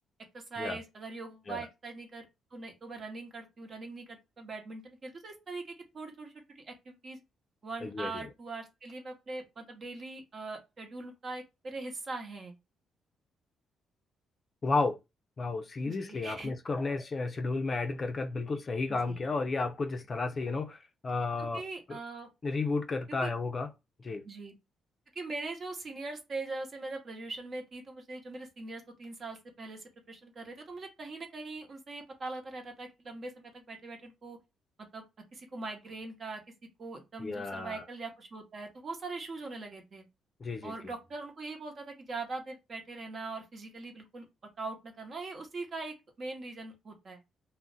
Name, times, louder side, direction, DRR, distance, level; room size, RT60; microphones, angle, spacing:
voice 1, 0.3-2.3 2.5-7.2 7.6-12.5 15.8-16.5 18.9-19.2 21.4-22.3 23.2-23.3 24.2-24.6 25.1-34.4 34.9-35.0 35.3-36.4 36.8-40.1 40.6-44.3 44.6-47.2, right 3 dB, 45° right, 0.9 m, -41 dB
voice 2, 7.8-8.2 14.6-15.0 15.4-21.6 21.9-22.0 22.4-23.7 24.0-24.2 37.2-37.8 40.4-40.7, left 3 dB, 35° left, 0.4 m, -32 dB
2.4 x 2.1 x 3.8 m
cardioid pair, 90°, 0 cm